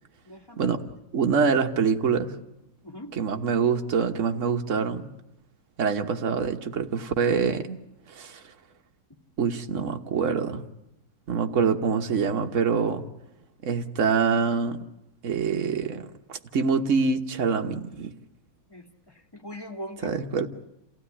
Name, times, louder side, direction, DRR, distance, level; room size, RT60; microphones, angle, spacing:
voice 1, 0.2-0.7 2.8-3.1 18.7-20.2, equal, 10° left, 2.1 m, -41 dB
voice 2, 1.1-2.3 3.1-5.1 5.8-7.8 8.1-8.4 9.4-10.6 11.3-13.0 13.6-14.8 15.2-18.1 20.0-20.5, right 5 dB, 45° right, 1.4 m, -25 dB
28.0 x 16.0 x 9.9 m
omnidirectional pair, 2.0 m